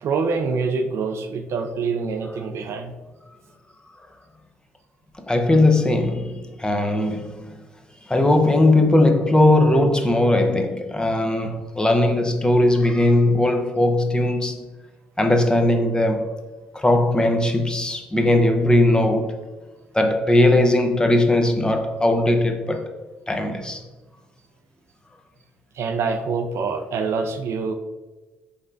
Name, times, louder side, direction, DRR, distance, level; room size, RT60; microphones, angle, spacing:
voice 1, 0.0-2.9 25.7-27.7, right 4 dB, 55° right, 0.4 m, -25 dB
voice 2, 5.3-7.6 8.1-14.6 15.2-16.3 16.7-19.4 19.9-22.9 23.3-23.8, left 1 dB, 15° left, 0.6 m, -19 dB
5.2 x 3.2 x 2.5 m
hypercardioid pair, 50°, 5 cm